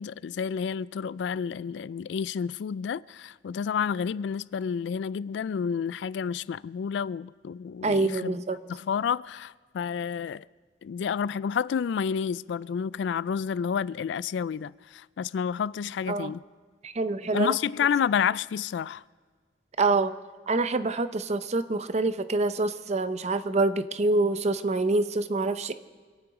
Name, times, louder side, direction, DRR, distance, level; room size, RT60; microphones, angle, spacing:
voice 1, 0.0-8.4 8.7-10.4 10.8-16.4 17.3-19.0, left 7 dB, 70° left, 0.3 m, -30 dB
voice 2, 7.8-8.6 16.1-16.3 16.8-17.5 19.8-20.1 20.5-25.7, right 3 dB, 40° right, 0.6 m, -26 dB
25.5 x 9.1 x 4.8 m
head